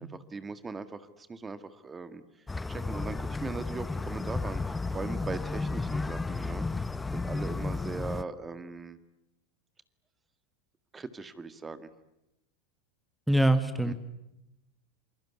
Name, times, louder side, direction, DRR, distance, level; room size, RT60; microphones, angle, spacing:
voice 1, 0.3-2.2 2.7-6.7 7.1-9.0 10.9-11.9 13.8-13.9, right 4 dB, 20° right, 11 dB, 1.9 m, -39 dB
sound 1, 2.5-8.2, left 3 dB, 15° left, 1.0 m, -33 dB
voice 2, 13.3-13.9, right 1 dB, 5° right, 10 dB, 1.7 m, -23 dB
28.0 x 21.5 x 9.7 m, 0.89 s
hypercardioid pair, 95°, 0 cm